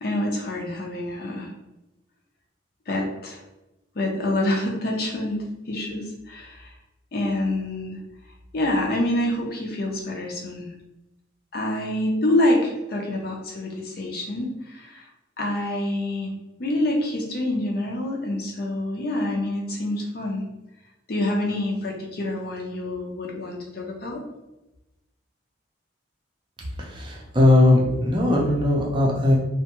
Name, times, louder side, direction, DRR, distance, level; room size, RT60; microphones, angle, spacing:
voice 1, 0.0-1.5 2.9-3.4 4.0-6.7 7.1-8.0 8.5-10.7 11.5-15.1 15.4-16.3 16.6-20.4 21.1-24.2, left 1 dB, 50° left, 0 dB, 0.5 m, -26 dB
voice 2, 26.8-29.4, left 1 dB, 25° right, -2 dB, 0.5 m, -19 dB
2.5 x 2.2 x 2.9 m, 0.98 s
head